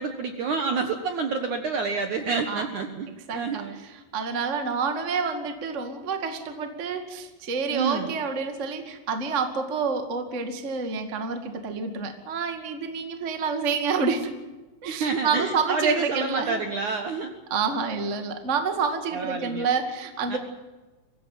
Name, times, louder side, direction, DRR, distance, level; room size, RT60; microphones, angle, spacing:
voice 1, 0.0-3.8 7.7-8.1 14.9-17.3 19.1-19.7 20.3-20.4, right 4 dB, 60° right, 6 dB, 2.1 m, -28 dB
voice 2, 3.3-14.3 14.8-16.6 17.5-20.4, right 5 dB, 30° right, 6 dB, 1.5 m, -28 dB
23.5 x 16.0 x 9.3 m, 1.2 s
omnidirectional pair, 5.1 m